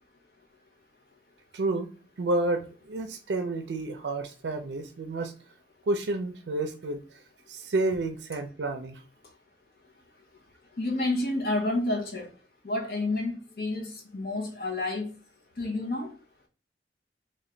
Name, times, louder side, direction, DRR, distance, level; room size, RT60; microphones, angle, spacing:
voice 1, 1.5-1.9 2.2-5.3 5.8-7.2 7.5-9.0, right 2 dB, 75° right, 0.4 m, -30 dB
voice 2, 10.8-12.3 12.6-15.1 15.6-16.1, left 2 dB, 55° left, 0.7 m, -29 dB
3.2 x 2.2 x 3.7 m
head